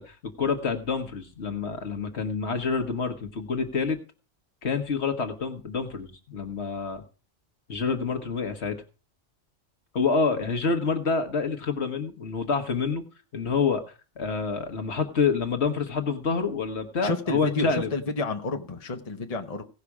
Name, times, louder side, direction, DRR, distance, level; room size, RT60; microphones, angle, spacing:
voice 1, 0.0-4.0 4.6-7.0 7.7-8.8 9.9-13.0 13.3-13.8 14.2-17.9, left 5 dB, 60° left, 1.6 m, -27 dB
voice 2, 17.0-19.6, left 3 dB, 30° left, 1.1 m, -30 dB
17.0 x 5.8 x 4.8 m
omnidirectional pair, 1.3 m